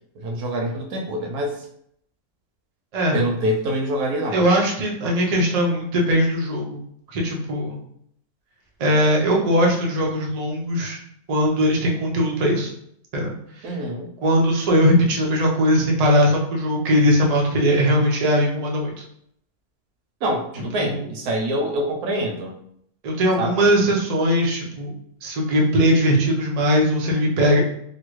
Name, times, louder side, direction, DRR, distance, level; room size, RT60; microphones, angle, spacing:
voice 1, 0.2-1.5 3.1-4.4 13.6-14.1 20.2-22.6 23.4-23.5, right 1 dB, 90° right, 1 dB, 1.2 m, -25 dB
voice 2, 4.3-6.8 7.1-7.8 8.8-11.0 11.3-12.7 13.1-13.3 13.6-13.7 14.2-18.9 20.8-21.1 23.0-24.9 25.2-27.6, equal, 55° right, -1 dB, 0.4 m, -20 dB
2.9 x 2.4 x 3.0 m, 0.70 s
omnidirectional pair, 1.6 m